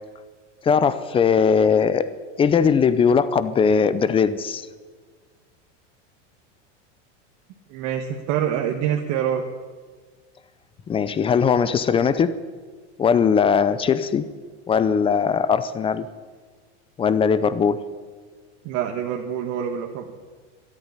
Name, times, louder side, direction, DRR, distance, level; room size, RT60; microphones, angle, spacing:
voice 1, 0.6-2.1 2.4-4.7 10.9-12.4 13.0-14.3 14.7-16.1 17.0-17.8, left 6 dB, 15° left, 14 dB, 0.5 m, -19 dB
voice 2, 7.7-9.4 18.6-20.1, right 9 dB, 50° right, 2 dB, 1.4 m, -26 dB
13.0 x 11.0 x 9.8 m, 1.5 s
supercardioid pair, 140°, 36 cm